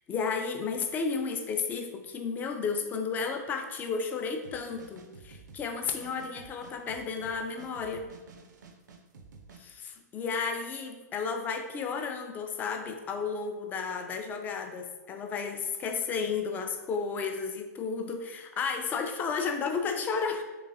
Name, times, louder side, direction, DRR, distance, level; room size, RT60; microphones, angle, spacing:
voice 1, 0.1-8.1 9.6-20.4, left 5 dB, 20° left, 5 dB, 0.3 m, -33 dB
sound 1, 4.4-9.6, right 4 dB, 85° right, 0.5 m, -51 dB
3.7 x 3.0 x 2.6 m, 1.2 s
hypercardioid pair, 130°, 9 cm